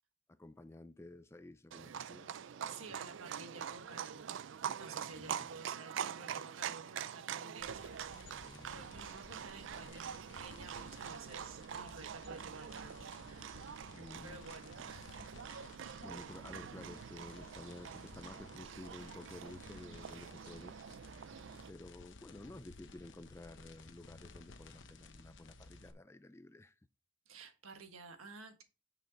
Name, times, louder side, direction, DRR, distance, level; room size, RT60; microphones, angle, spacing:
voice 1, 0.3-2.7 5.1-5.5 8.4-8.8 13.9-14.4 16.0-20.8 21.7-26.8, left 1 dB, 15° left, 0.3 m, -52 dB
Livestock farm animals working animals, 1.7-21.7, right 8 dB, 65° right, 0.3 m, -45 dB
voice 2, 2.7-4.4 4.7-15.3 27.2-28.6, right 4 dB, 90° right, 1.5 m, -53 dB
sound 1, 7.6-25.9, left 3 dB, 65° left, 0.9 m, -56 dB
9.1 x 5.6 x 3.9 m
head